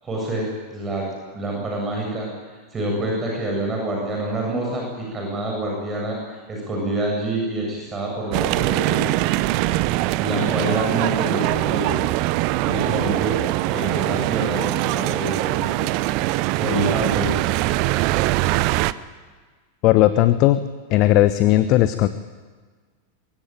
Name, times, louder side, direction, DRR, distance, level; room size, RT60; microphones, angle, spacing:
voice 1, 0.0-9.1 10.2-12.0 12.6-15.9 16.3-17.3, right 1 dB, 20° right, -1 dB, 7.7 m, -27 dB
sound 1, 8.3-18.9, right 18 dB, 45° right, 0.8 m, -22 dB
voice 2, 19.8-20.6 20.9-22.1, left 15 dB, 40° left, 13 dB, 1.0 m, -16 dB
23.5 x 21.0 x 9.1 m, 1.4 s
figure-of-eight pair, 90°, 0 cm